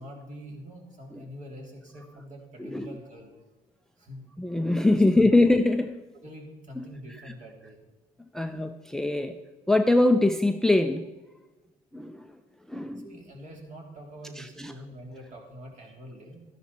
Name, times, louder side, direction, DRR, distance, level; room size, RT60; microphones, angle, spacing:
voice 1, 0.0-3.3 4.0-4.3 4.9-5.2 6.2-7.8 13.0-16.5, equal, 45° right, 0 dB, 3.4 m, -44 dB
voice 2, 2.6-3.0 4.4-6.0 6.8-6.9 7.2-7.3 8.3-9.4 9.7-11.1 11.9-12.2 12.7-13.1 14.4-14.7, left 2 dB, 5° left, 9 dB, 0.5 m, -23 dB
13.0 x 10.5 x 4.3 m, 1.2 s
cardioid pair, 110°, 17 cm